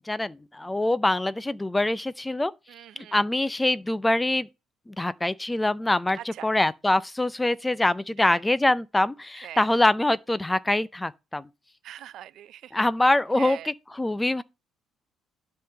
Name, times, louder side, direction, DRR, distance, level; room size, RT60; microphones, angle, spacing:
voice 1, 0.1-2.5 3.1-4.5 4.9-11.4 12.7-14.4, left 1 dB, 10° left, 0.4 m, -24 dB
voice 2, 2.7-3.2 6.2-6.5 8.2-8.4 9.4-9.7 11.8-12.7 13.4-13.7, right 12 dB, 60° right, 0.5 m, -42 dB
10.5 x 3.7 x 6.8 m
cardioid pair, 150°, 0 cm